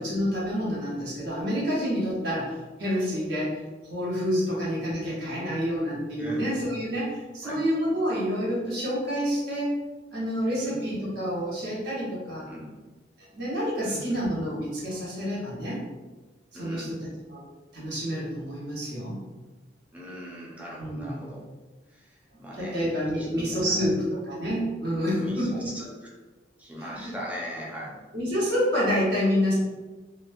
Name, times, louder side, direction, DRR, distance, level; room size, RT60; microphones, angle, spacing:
voice 1, 0.0-3.6 3.9-9.8 10.1-12.4 13.3-15.8 16.5-17.0 17.3-17.4 17.7-19.2 20.8-21.2 22.6-23.9 24.3-25.7 26.8-27.1 28.1-29.5, equal, 75° right, -6 dB, 1.0 m, -28 dB
voice 2, 6.2-6.5 7.4-7.6 10.5-10.8 12.5-12.7 13.8-14.2 16.5-17.0 19.9-21.4 21.9-23.9 25.2-26.1 26.6-28.0, equal, 10° right, -4 dB, 0.5 m, -40 dB
2.6 x 2.1 x 2.5 m, 1.2 s
head